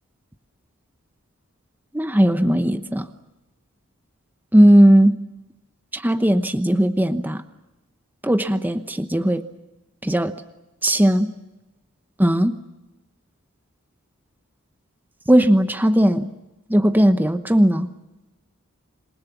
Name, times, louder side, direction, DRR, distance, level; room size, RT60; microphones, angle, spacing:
voice 1, 1.9-3.0 4.5-5.2 5.9-7.4 8.2-9.5 10.0-10.3 10.8-11.3 12.2-12.6 15.3-16.3 16.7-17.9, equal, 10° right, 9 dB, 0.9 m, -17 dB
27.0 x 22.0 x 7.2 m, 1.0 s
head